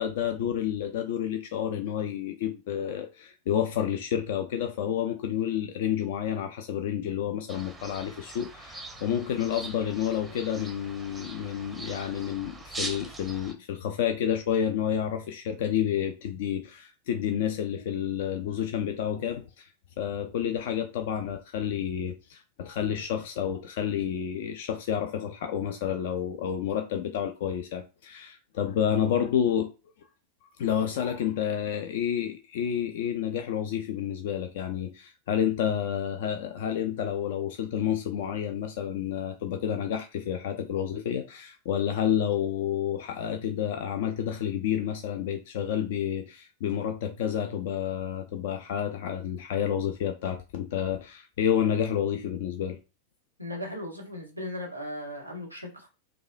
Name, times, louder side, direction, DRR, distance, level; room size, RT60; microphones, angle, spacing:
voice 1, 0.0-19.7 20.0-29.7 30.6-52.8, left 9 dB, 55° left, 0.4 m, -30 dB
sound 1, 7.5-13.5, right 2 dB, 5° right, 0.6 m, -42 dB
voice 2, 53.4-55.9, left 1 dB, 90° left, 1.1 m, -37 dB
4.7 x 2.2 x 2.5 m
figure-of-eight pair, 90°, 0 cm